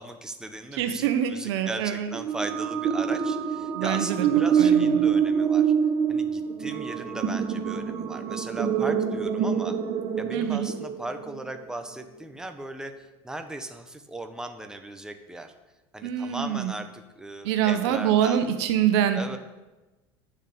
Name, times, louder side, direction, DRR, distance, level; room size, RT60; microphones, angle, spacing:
voice 1, 0.0-5.7 6.1-9.8 10.2-15.5 15.9-18.4 19.1-19.4, right 2 dB, 5° right, 6 dB, 1.1 m, -38 dB
voice 2, 0.7-2.1 3.7-4.3 4.6-5.1 10.3-10.7 16.0-16.7 17.4-19.2, right 9 dB, 75° right, 7 dB, 1.3 m, -25 dB
sound 1, 2.1-11.5, right 7 dB, 45° right, 1.5 m, -25 dB
10.0 x 6.7 x 8.8 m, 1.1 s
supercardioid pair, 115°, 14 cm